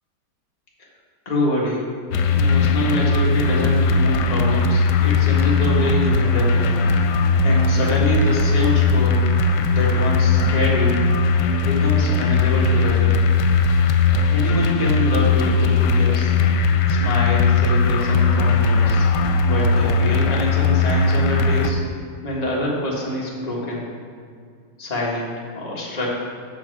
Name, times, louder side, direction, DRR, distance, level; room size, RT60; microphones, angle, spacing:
voice 1, 1.2-1.9 2.4-6.7 7.4-9.3 9.7-11.0 11.6-13.2 14.3-16.3 16.9-19.1 19.4-21.8 22.2-23.8 24.8-26.1, left 1 dB, 25° left, -5 dB, 1.5 m, -25 dB
sound 1, 2.1-21.7, left 4 dB, 90° left, 1.2 m, -18 dB
7.8 x 6.4 x 4.7 m, 2.2 s
omnidirectional pair, 1.8 m